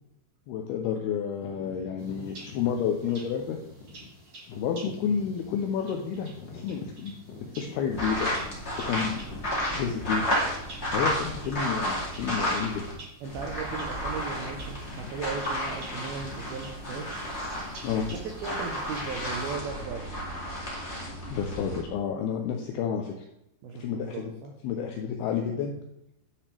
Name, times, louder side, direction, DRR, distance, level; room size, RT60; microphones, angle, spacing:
voice 1, 0.5-3.6 4.6-7.2 7.6-8.6 8.9-9.3 9.8-10.2 10.9-12.8 15.0-15.1 17.8-18.1 21.3-23.3 23.8-24.3 24.6-25.7, left 7 dB, 85° left, 3 dB, 2.2 m, -30 dB
sound 1, 1.4-11.2 11.8-11.9 12.6-12.8 13.1-13.3 14.0-14.5 14.8-18.2, left 4 dB, 70° left, 3.3 m, -48 dB
sound 2, 2.0-19.5, right 2 dB, 45° right, 1.9 m, -50 dB
sound 3, 7.9-12.9 13.2-21.8, equal, 30° left, 1.3 m, -32 dB
voice 2, 13.2-17.2 18.2-20.1 23.6-24.5, right 5 dB, 80° right, 1 dB, 2.2 m, -37 dB
11.0 x 5.9 x 3.3 m, 0.81 s
omnidirectional pair, 5.2 m